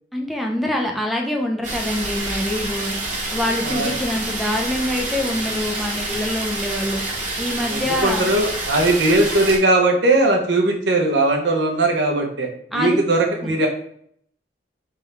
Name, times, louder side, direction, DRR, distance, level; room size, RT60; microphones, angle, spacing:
voice 1, 0.1-7.0 7.4-8.3 12.7-13.0 13.4-13.5, left 1 dB, ahead, 1 dB, 0.5 m, -25 dB
sound 1, 1.6-9.6, right 2 dB, 40° right, 1.1 m, -27 dB
voice 2, 7.7-13.7, right 2 dB, 80° right, 2 dB, 1.0 m, -19 dB
4.4 x 3.5 x 3.4 m, 0.65 s
head